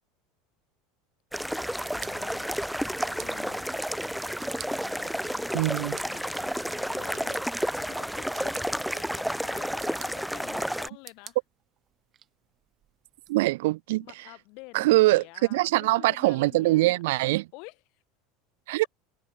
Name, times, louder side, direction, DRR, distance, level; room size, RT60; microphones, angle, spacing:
sound 1, 1.3-10.9, equal, ahead, 0.7 m, -31 dB
voice 1, 1.8-2.6 2.9-3.7 4.8-7.4 7.9-11.4 14.0-17.0 17.5-18.0, left 29 dB, 50° left, 5.9 m, -49 dB
voice 2, 5.5-6.0 13.3-14.1 14.7-15.2 15.5-17.5 18.7-18.8, right 20 dB, 80° right, 0.7 m, -23 dB
sound 2, 10.8-13.3, right 10 dB, 25° right, 2.1 m, -51 dB
supercardioid pair, 160°, 0 cm